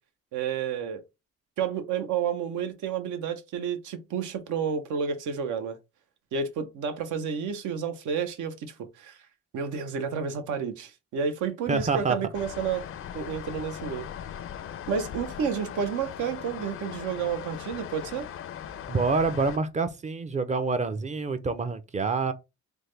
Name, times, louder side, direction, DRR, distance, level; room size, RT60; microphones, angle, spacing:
voice 1, 0.3-1.0 1.6-5.8 6.3-9.2 9.5-12.8 13.1-14.1 14.9-18.3, right 6 dB, 80° right, 0.7 m, -30 dB
voice 2, 11.7-12.2 18.9-22.3, right 4 dB, 25° right, 0.4 m, -27 dB
sound 1, 12.3-19.6, left 9 dB, 45° left, 0.4 m, -39 dB
3.4 x 2.1 x 3.1 m
cardioid pair, 90°, 30 cm